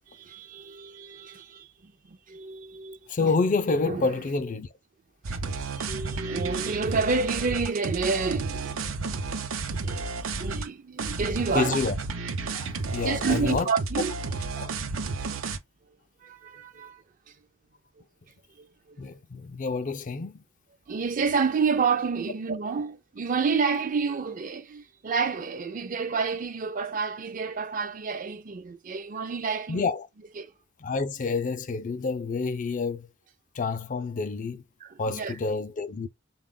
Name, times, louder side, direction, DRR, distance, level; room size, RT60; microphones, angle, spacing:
voice 1, 0.1-3.3 3.8-4.1 5.3-5.4 5.7-8.9 9.7-11.8 12.9-14.1 16.2-17.0 18.6-19.0 20.9-29.9 30.4-30.5 34.8-35.4, right 5 dB, 40° right, 0.5 m, -29 dB
voice 2, 3.1-4.7 11.5-11.9 12.5-13.7 14.6-14.7 19.0-20.4 29.7-30.1 30.8-33.1 33.5-34.6 35.0-36.1, left 4 dB, 40° left, 0.4 m, -28 dB
sound 1, 5.2-10.7 11.0-15.6, right 3 dB, 90° right, 0.6 m, -32 dB
4.0 x 2.3 x 3.6 m
head